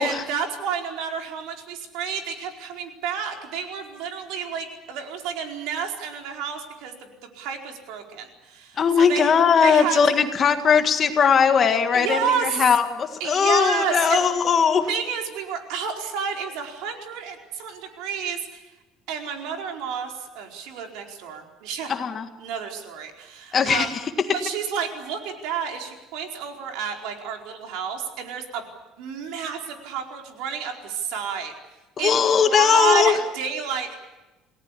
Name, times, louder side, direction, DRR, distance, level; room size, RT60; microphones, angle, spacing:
voice 1, 0.0-7.1 7.3-9.3 9.6-10.1 11.9-12.7 13.2-14.3 14.9-18.6 19.1-21.9 22.4-24.0 24.3-28.7 29.0-31.5 32.0-34.0, right 7 dB, 70° right, 3 dB, 4.6 m, -30 dB
voice 2, 8.8-14.9 21.9-22.3 23.5-23.9 32.0-33.2, left 6 dB, 30° left, 7 dB, 1.7 m, -19 dB
28.5 x 18.5 x 8.5 m, 1.1 s
cardioid pair, 170°, 0 cm